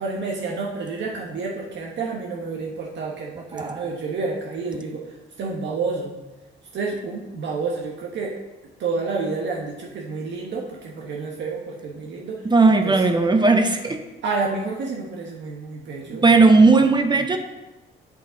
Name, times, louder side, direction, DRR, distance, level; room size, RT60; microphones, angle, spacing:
voice 1, 0.0-5.0 5.4-6.2 6.7-8.3 8.8-12.4 12.8-13.0 14.2-16.2, right 4 dB, 65° right, -1 dB, 1.0 m, -29 dB
voice 2, 3.5-3.8 12.4-14.0 16.2-17.4, right 3 dB, 20° right, 6 dB, 0.7 m, -16 dB
7.8 x 5.4 x 3.8 m, 1.1 s
cardioid pair, 90°, 20 cm